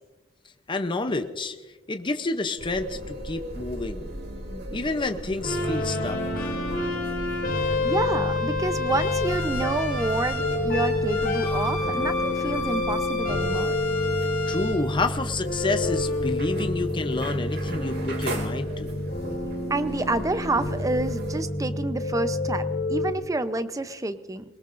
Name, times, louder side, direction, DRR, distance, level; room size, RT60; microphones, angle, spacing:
voice 1, 0.7-1.6 1.9-4.1 4.7-6.6 14.5-19.0, left 3 dB, 25° left, 8 dB, 0.7 m, -29 dB
sound 1, 2.6-21.4, right 1 dB, 55° right, 2.4 m, -39 dB
sound 2, 5.4-23.1, left 2 dB, 50° left, 4.5 m, -27 dB
voice 2, 7.6-13.7 19.7-24.4, right 2 dB, 15° right, 11 dB, 0.6 m, -28 dB
22.5 x 20.0 x 2.6 m, 1.1 s
head